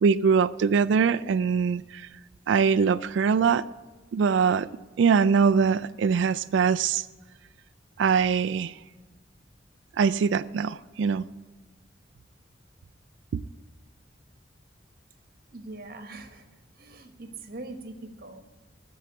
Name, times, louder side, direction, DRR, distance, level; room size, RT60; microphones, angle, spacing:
voice 1, 0.0-2.0 2.5-3.6 4.1-4.7 5.0-7.0 8.0-8.7 10.0-11.2 13.3-13.4, right 6 dB, 80° right, 12 dB, 0.3 m, -22 dB
voice 2, 15.5-18.4, right 2 dB, 55° right, 6 dB, 1.2 m, -42 dB
14.0 x 4.8 x 8.7 m, 1.3 s
head